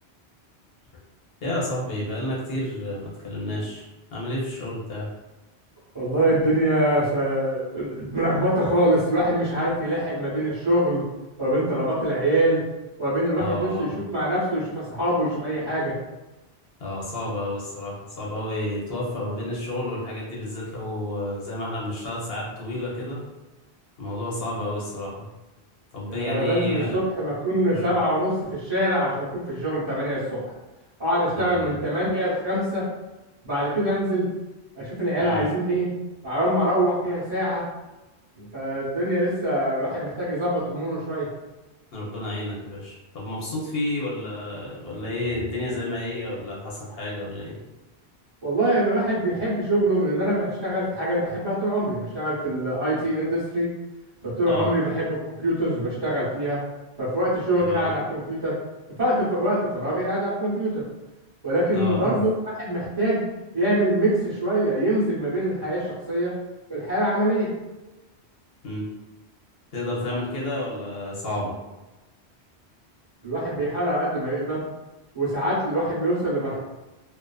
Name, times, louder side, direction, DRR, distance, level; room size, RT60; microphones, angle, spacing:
voice 1, 1.4-5.1 13.4-14.0 16.8-23.2 24.0-25.2 25.9-27.0 27.7-27.9 31.3-31.8 35.2-35.5 41.9-47.6 54.5-54.7 57.6-57.9 61.7-62.2 68.6-68.8 69.7-71.5, left 1 dB, 65° left, -5 dB, 1.0 m, -30 dB
voice 2, 5.9-11.0 11.4-12.6 13.0-16.0 26.1-30.5 31.0-32.8 33.4-34.3 34.8-35.9 36.2-37.6 38.4-41.3 48.4-53.7 54.2-56.6 57.0-58.5 59.0-60.8 61.4-62.3 62.6-63.2 63.5-66.3 66.7-67.5 73.2-74.6 75.1-76.6, right 1 dB, 30° right, -10 dB, 0.8 m, -24 dB
2.4 x 2.4 x 2.2 m, 1.1 s
omnidirectional pair, 1.1 m